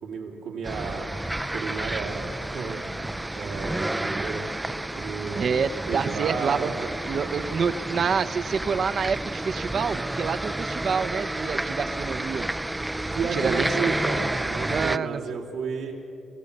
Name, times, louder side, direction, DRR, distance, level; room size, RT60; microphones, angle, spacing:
voice 1, 0.0-1.2 1.5-2.8 3.3-4.5 5.0-6.7 13.0-15.9, right 5 dB, 85° right, -3 dB, 3.2 m, -32 dB
sound 1, 0.6-15.0, right 1 dB, 10° right, 0.4 m, -30 dB
voice 2, 5.4-12.5 13.3-13.9 14.7-15.2, right 6 dB, 50° right, 12 dB, 0.8 m, -27 dB
25.5 x 16.0 x 6.8 m, 2.7 s
cardioid pair, 90°, 0 cm